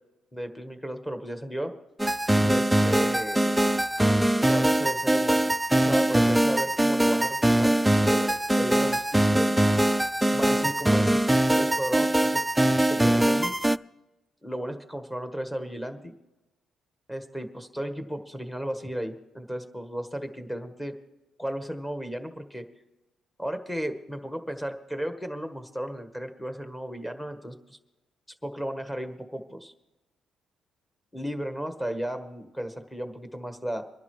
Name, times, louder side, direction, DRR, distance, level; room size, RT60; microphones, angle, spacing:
voice 1, 0.3-1.7 2.4-3.5 4.5-9.5 10.3-11.2 11.5-12.4 12.9-13.5 14.4-16.1 17.1-20.9 21.4-22.6 23.4-27.8 28.4-29.7 31.1-33.8, equal, 10° left, 6 dB, 1.5 m, -34 dB
sound 1, 2.0-13.8, right 1 dB, 5° right, 0.3 m, -22 dB
24.5 x 11.0 x 3.2 m, 1.0 s
cardioid pair, 90°, 0 cm